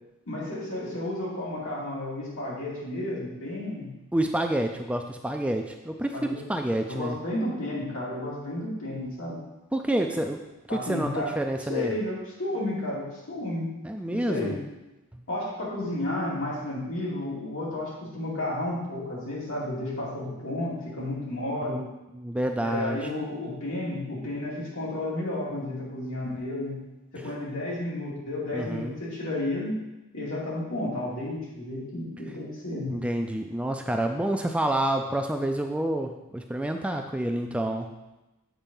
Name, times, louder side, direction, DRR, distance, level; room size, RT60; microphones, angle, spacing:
voice 1, 0.3-3.9 6.1-6.4 6.8-9.4 10.7-13.7 14.1-14.6 15.3-21.8 22.6-26.8 27.1-29.7 30.1-33.0, left 1 dB, 65° left, -6 dB, 2.6 m, -32 dB
voice 2, 4.1-7.2 9.7-10.4 10.7-11.1 11.4-11.9 13.8-14.5 21.6-21.8 22.1-23.1 27.2-27.3 28.5-29.0 32.9-37.9, right 1 dB, 5° right, 4 dB, 0.3 m, -28 dB
7.4 x 4.3 x 5.4 m, 1.0 s
head